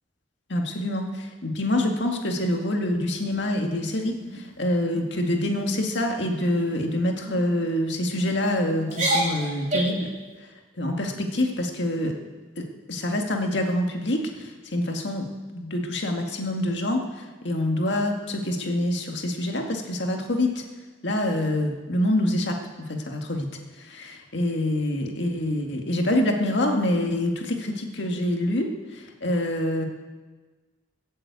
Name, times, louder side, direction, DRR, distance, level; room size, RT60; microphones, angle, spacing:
voice 1, 0.5-10.1 10.8-12.1 12.6-15.3 15.5-20.6 21.0-23.5 23.8-29.9, left 1 dB, 60° left, 2 dB, 2.1 m, -26 dB
sound 1, 3.1-3.7 4.2-4.4 4.8-5.1 5.4-5.8 6.4-6.8 7.2-7.4 8.1-8.5 8.9-10.1, right 1 dB, 35° right, 3.6 m, -29 dB
21.0 x 7.7 x 8.3 m, 1.3 s
head